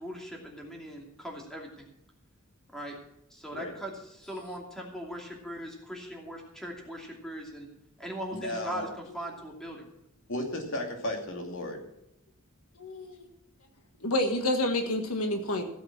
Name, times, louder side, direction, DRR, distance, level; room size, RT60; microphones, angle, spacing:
voice 1, 0.0-1.9 2.7-3.0 3.3-7.7 8.0-9.9, equal, ahead, -1 dB, 2.7 m, -40 dB
voice 2, 8.3-8.9 10.3-11.8, left 1 dB, 60° left, 2 dB, 2.5 m, -34 dB
voice 3, 12.8-13.2 14.0-15.6, left 1 dB, 80° left, 5 dB, 1.6 m, -28 dB
15.5 x 7.8 x 6.0 m, 0.83 s
head